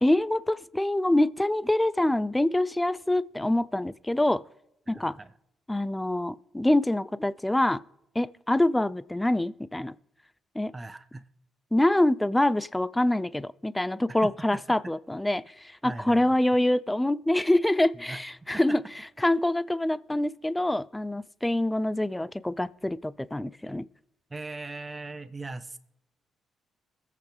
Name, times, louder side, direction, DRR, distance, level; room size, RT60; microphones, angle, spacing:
voice 1, 0.0-4.4 4.9-5.2 5.7-7.8 8.2-9.9 10.6-10.7 11.7-15.4 15.8-18.8 19.2-23.9, left 1 dB, 10° left, 0.4 m, -25 dB
voice 2, 4.9-5.3 10.7-11.2 14.1-14.9 15.8-16.3 17.9-18.2 18.5-18.8 24.3-25.8, right 3 dB, 25° right, 1.0 m, -40 dB
21.5 x 8.3 x 3.4 m
cardioid pair, 75°, 0 cm